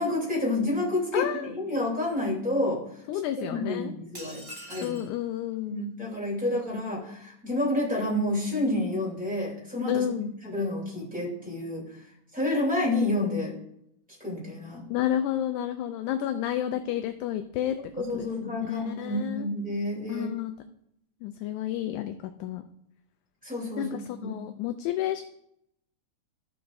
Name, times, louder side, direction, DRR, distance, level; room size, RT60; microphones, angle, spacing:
voice 1, 0.0-2.8 3.5-5.0 5.7-11.9 12.3-13.6 14.2-14.8 17.9-20.3 23.4-24.3, left 1 dB, 5° right, -4 dB, 2.6 m, -29 dB
voice 2, 1.1-1.5 3.1-3.9 4.8-5.9 9.9-10.3 14.9-17.8 18.1-19.5 20.1-20.5 21.2-22.6 23.8-25.2, left 11 dB, 80° left, 8 dB, 1.9 m, -31 dB
sound 1, 4.1-5.1, right 1 dB, 30° right, 0.6 m, -43 dB
13.5 x 7.0 x 2.6 m, 0.75 s
omnidirectional pair, 3.7 m